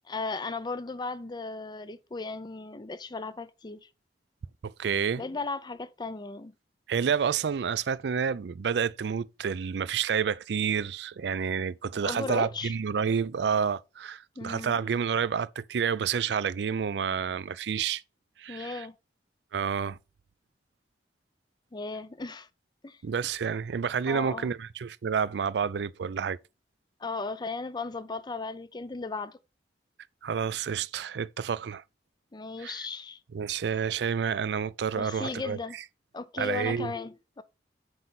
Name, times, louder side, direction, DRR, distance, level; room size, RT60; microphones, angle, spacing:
voice 1, 0.1-3.8 5.2-6.5 12.0-12.7 14.4-14.8 18.5-18.9 21.7-22.5 22.8-23.0 24.1-24.5 27.0-29.4 32.3-33.2 34.9-35.8 36.1-37.4, left 3 dB, 25° left, 0.5 m, -36 dB
voice 2, 4.6-5.2 6.9-18.0 18.4-18.9 19.5-20.0 23.0-26.4 30.2-31.8 32.6-32.8 33.3-35.8 36.4-36.9, right 7 dB, 70° right, 0.4 m, -29 dB
7.8 x 5.3 x 3.9 m
head